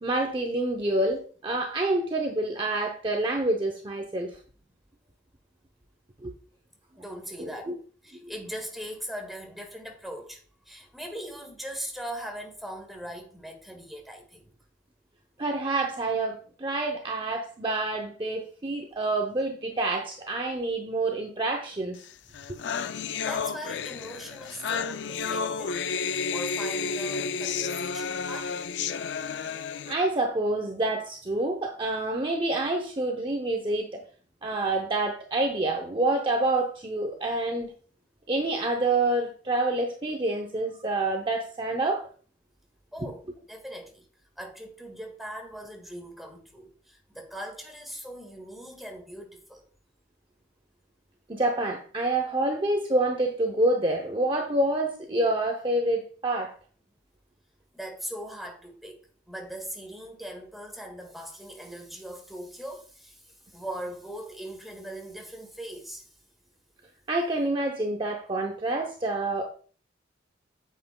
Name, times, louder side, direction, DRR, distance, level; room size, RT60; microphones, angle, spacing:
voice 1, 0.0-4.4 6.2-6.3 7.4-7.5 15.4-22.0 29.8-34.0 34.4-37.7 38.3-42.1 43.0-43.1 51.3-56.5 67.1-69.5, right 2 dB, 25° right, 0.7 m, -27 dB
voice 2, 7.0-7.8 8.0-14.5 23.2-25.8 26.3-28.7 42.9-44.0 44.4-49.6 57.7-59.0 59.3-63.2 63.5-66.1, equal, ahead, 1.7 m, -40 dB
sound 1, 22.1-22.2 22.3-29.9, left 5 dB, 60° left, 0.4 m, -31 dB
9.0 x 8.0 x 2.2 m
head